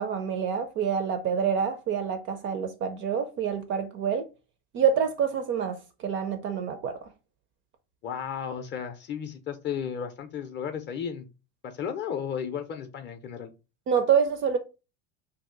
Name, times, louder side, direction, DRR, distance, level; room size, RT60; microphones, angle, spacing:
voice 1, 0.0-4.3 4.7-7.1 13.9-14.6, right 7 dB, 35° right, 0.4 m, -27 dB
voice 2, 8.0-11.3 11.6-13.5, left 7 dB, 30° left, 0.5 m, -34 dB
2.7 x 2.4 x 3.7 m
supercardioid pair, 130°, 36 cm